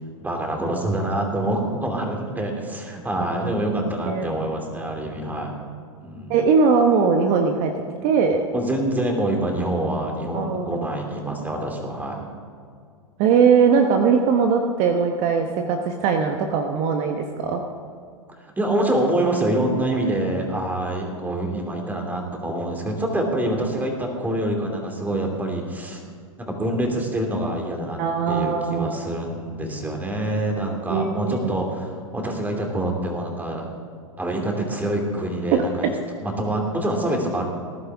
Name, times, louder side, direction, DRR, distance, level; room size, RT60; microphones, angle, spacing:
voice 1, 0.2-5.6 6.0-6.4 8.5-12.2 18.5-26.0 26.4-28.0 28.3-33.7 34.2-35.9 36.2-37.4, right 1 dB, 10° right, 2 dB, 2.7 m, -26 dB
voice 2, 6.3-7.7 8.0-8.4 10.3-10.9 13.2-17.6 28.0-29.0 30.9-31.5 35.5-35.6, right 6 dB, 45° right, 4 dB, 1.2 m, -20 dB
19.5 x 11.5 x 3.6 m, 2.2 s
hypercardioid pair, 105°, 17 cm